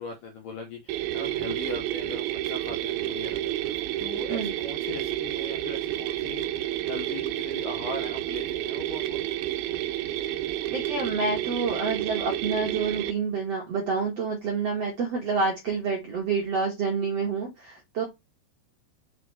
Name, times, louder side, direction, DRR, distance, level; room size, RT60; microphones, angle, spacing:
voice 1, 0.0-9.2, left 3 dB, 70° left, 2.1 m, -39 dB
sound 1, 0.9-13.1, right 14 dB, 90° right, 2.1 m, -30 dB
voice 2, 10.7-18.0, right 4 dB, 70° right, 1.5 m, -28 dB
5.9 x 4.8 x 3.3 m
omnidirectional pair, 5.1 m